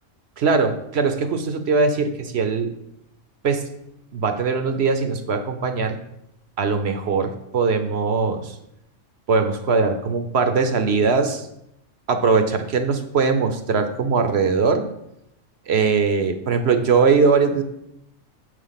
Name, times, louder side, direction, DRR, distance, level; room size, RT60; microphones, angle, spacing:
voice 1, 0.4-2.7 3.4-3.6 4.1-6.0 6.6-8.5 9.3-11.5 12.1-14.8 15.7-17.6, right 4 dB, 60° right, 8 dB, 0.8 m, -20 dB
7.3 x 5.0 x 5.7 m, 0.81 s
omnidirectional pair, 1.4 m